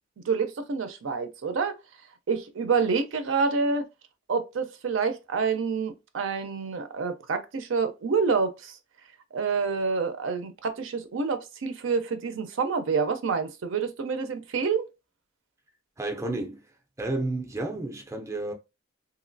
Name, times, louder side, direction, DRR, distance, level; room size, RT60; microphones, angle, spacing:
voice 1, 0.3-1.8 2.3-3.9 4.3-8.8 9.3-14.8, right 5 dB, 75° right, 0.5 m, -27 dB
voice 2, 16.0-16.6 17.0-18.5, right 2 dB, 15° right, 0.4 m, -31 dB
2.9 x 2.7 x 2.6 m
head